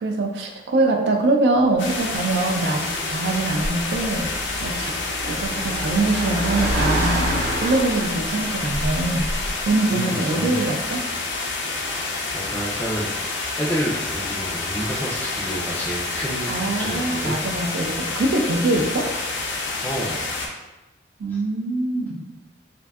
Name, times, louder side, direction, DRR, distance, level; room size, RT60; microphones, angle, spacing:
voice 1, 0.0-4.9 5.2-7.3 7.6-9.3 9.7-11.0 16.5-19.1 21.2-22.3, right 2 dB, 65° right, 2 dB, 0.3 m, -23 dB
Car, 1.7-9.7, equal, 90° right, 0.8 m, -29 dB
sound 1, 1.8-20.5, left 3 dB, 80° left, 0.4 m, -28 dB
voice 2, 9.9-10.5 11.7-11.9 12.3-17.4 19.8-20.3 21.3-21.4, equal, 10° left, -4 dB, 0.3 m, -30 dB
2.6 x 2.2 x 2.2 m, 1.1 s
head